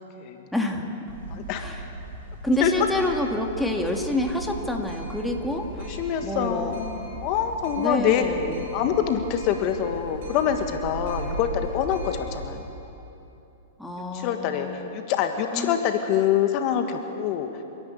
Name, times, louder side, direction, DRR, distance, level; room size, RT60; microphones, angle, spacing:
voice 1, 0.5-0.9 1.6-1.8 2.4-5.9 6.2-6.8 7.8-8.6 13.8-14.9 15.5-15.8, left 1 dB, 5° left, 1 dB, 2.0 m, -27 dB
sound 1, 1.1-12.5, right 2 dB, 60° right, 6.1 m, -37 dB
voice 2, 1.3-1.7 2.6-2.7 5.8-8.2 8.7-12.7 14.1-17.5, left 9 dB, 45° left, 6 dB, 1.6 m, -25 dB
29.5 x 10.5 x 8.5 m, 2.9 s
hypercardioid pair, 120°, 0 cm